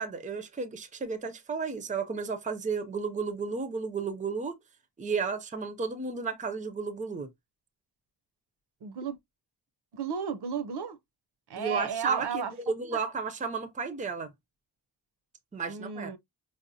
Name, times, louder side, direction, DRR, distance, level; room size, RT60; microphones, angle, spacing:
voice 1, 0.0-4.6 5.0-7.3 11.6-14.3 15.5-16.1, right 4 dB, 20° right, 0.5 m, -33 dB
voice 2, 8.8-9.2 9.9-11.0 11.5-12.5 15.7-16.2, right 6 dB, 70° right, 0.6 m, -33 dB
4.9 x 2.0 x 2.6 m
wide cardioid pair, 160°, 42 cm